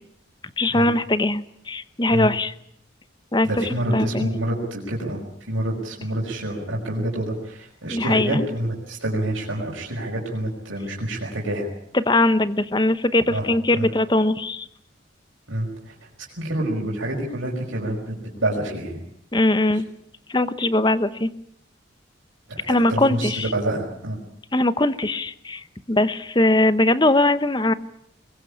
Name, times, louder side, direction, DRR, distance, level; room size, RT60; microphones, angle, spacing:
voice 1, 0.6-2.5 3.3-3.5 3.9-4.3 7.9-8.4 11.9-14.7 19.3-19.9 20.3-21.3 22.6-23.5 24.5-27.7, left 2 dB, 25° left, 13 dB, 0.9 m, -21 dB
voice 2, 3.4-5.2 5.5-11.7 13.3-13.9 15.5-15.9 16.4-19.0 22.5-24.2, right 1 dB, 90° right, -2 dB, 5.4 m, -27 dB
22.0 x 21.5 x 8.6 m, 0.69 s
head